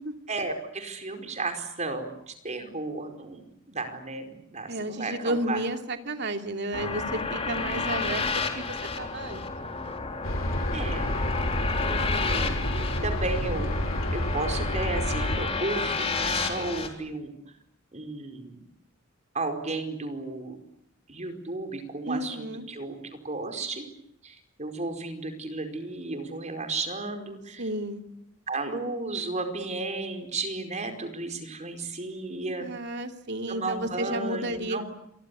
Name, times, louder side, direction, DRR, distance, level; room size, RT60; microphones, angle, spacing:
voice 1, 0.3-5.6 10.7-11.1 11.8-13.7 14.1-17.4 17.9-18.6 19.3-20.6 21.1-23.9 24.2-27.7 28.5-32.7 33.5-34.8, right 3 dB, 35° right, 6 dB, 4.9 m, -34 dB
voice 2, 4.7-9.4 22.1-22.6 27.6-28.0 32.6-34.8, right 1 dB, 55° right, 6 dB, 2.7 m, -32 dB
sound 1, 6.7-16.9, left 4 dB, 30° left, 3.9 m, -31 dB
sound 2, 10.2-15.5, left 1 dB, 70° left, 3.5 m, -29 dB
28.5 x 23.5 x 8.5 m, 0.76 s
head